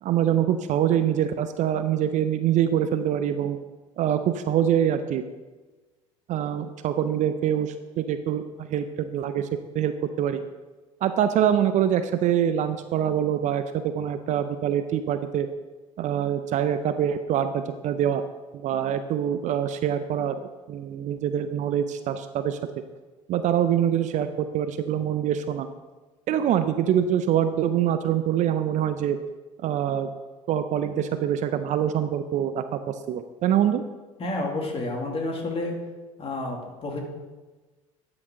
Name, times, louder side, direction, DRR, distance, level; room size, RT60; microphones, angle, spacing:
voice 1, 0.0-3.6 4.0-5.2 6.3-9.5 9.7-10.4 11.0-15.5 16.0-18.2 18.5-20.4 20.7-22.6 23.3-25.7 26.3-29.2 29.6-30.1 30.5-33.8, right 10 dB, 50° right, 10 dB, 0.5 m, -24 dB
voice 2, 34.2-35.8 36.2-37.0, left 2 dB, 35° left, 1 dB, 2.3 m, -30 dB
12.0 x 6.1 x 3.7 m, 1.2 s
hypercardioid pair, 70°, 17 cm